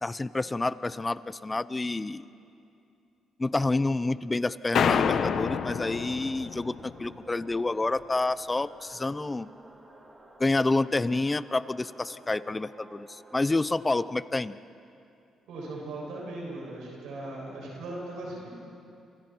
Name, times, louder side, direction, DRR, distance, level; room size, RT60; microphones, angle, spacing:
voice 1, 0.0-2.2 3.4-9.5 10.4-14.6, left 2 dB, 20° left, 16 dB, 0.6 m, -28 dB
sound 1, 4.7-7.2, left 7 dB, 65° left, 0.9 m, -28 dB
sound 2, 4.9-13.7, right 2 dB, 20° right, 4.6 m, -53 dB
voice 2, 15.5-18.5, right 2 dB, 85° right, -3 dB, 6.9 m, -38 dB
28.0 x 28.0 x 4.6 m, 2.6 s
cardioid pair, 90°, 0 cm